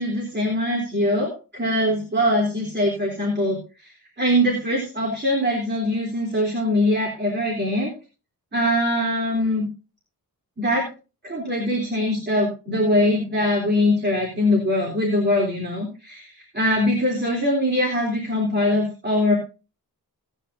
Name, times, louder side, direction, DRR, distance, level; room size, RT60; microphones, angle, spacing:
voice 1, 0.0-3.6 4.2-7.9 8.5-9.7 10.6-10.8 11.2-19.3, left 1 dB, 30° right, -2 dB, 3.7 m, -22 dB
18.0 x 10.0 x 2.8 m, 0.32 s
wide cardioid pair, 120°, 38 cm